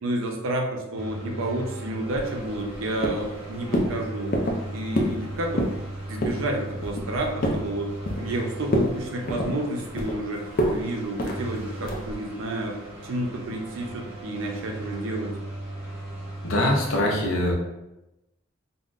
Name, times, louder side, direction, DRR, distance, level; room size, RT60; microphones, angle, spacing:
voice 1, 0.0-4.3 4.7-5.7 6.1-7.9 8.2-12.8 13.0-15.3, right 1 dB, 85° right, 1 dB, 0.6 m, -30 dB
sound 1, 0.9-17.0, right 2 dB, 10° right, 1.0 m, -37 dB
sound 2, 2.1-2.8 3.0-3.4 3.7-3.9 4.3-4.6 4.9-5.2 5.5-5.8 6.2-6.4 6.8-7.6 8.0-8.4 8.7-8.9 9.3-10.2 10.6-10.8 11.2-11.4 11.8-12.1, equal, 45° left, 0.4 m, -26 dB
voice 2, 16.4-17.5, left 1 dB, 90° left, -1 dB, 0.7 m, -23 dB
3.6 x 2.1 x 2.4 m, 0.95 s
head